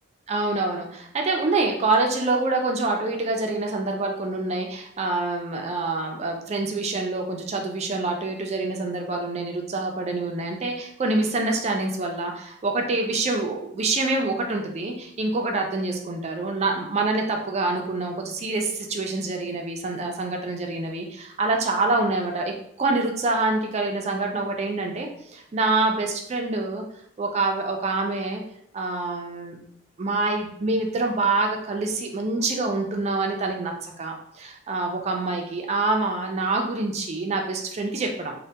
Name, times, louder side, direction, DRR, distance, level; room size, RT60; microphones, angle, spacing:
voice 1, 0.3-26.8 27.2-28.4 28.7-29.6 30.0-38.3, right 3 dB, 35° right, 2 dB, 0.4 m, -26 dB
3.2 x 2.1 x 2.7 m, 0.69 s
head